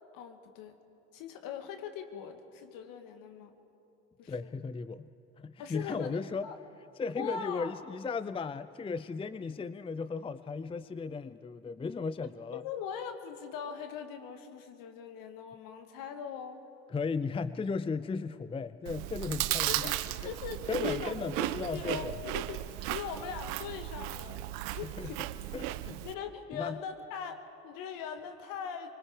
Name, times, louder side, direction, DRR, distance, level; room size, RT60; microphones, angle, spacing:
voice 1, 0.1-0.8 1.1-3.6 4.2-4.5 5.6-6.2 6.4-6.6 7.2-7.7 12.5-16.6 19.6-21.1 21.4-25.2 25.7-25.8 26.0-28.9, left 7 dB, 65° left, 7 dB, 1.8 m, -41 dB
voice 2, 4.3-5.1 5.4-6.5 7.0-12.6 16.9-20.0 20.2-20.3 20.7-22.1 25.0-25.1 25.5-26.0 26.5-26.8, left 4 dB, 15° left, 15 dB, 0.5 m, -36 dB
Chewing mastication, 18.9-26.2, right 16 dB, 75° right, 0.7 m, -35 dB
24.5 x 23.5 x 5.0 m, 2.7 s
hypercardioid pair, 60°, 36 cm